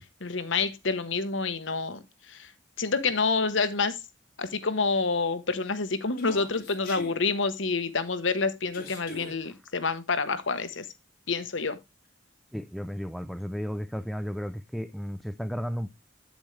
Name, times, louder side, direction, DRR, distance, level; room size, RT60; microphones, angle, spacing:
voice 1, 0.2-2.0 2.3-2.5 2.8-4.0 4.4-10.9 11.3-11.8, left 4 dB, 70° left, 1.1 m, -28 dB
Human voice, 6.2-7.1 8.7-9.4, left 2 dB, 45° left, 3.6 m, -41 dB
voice 2, 12.5-15.9, equal, ahead, 0.4 m, -33 dB
9.1 x 7.1 x 3.2 m
head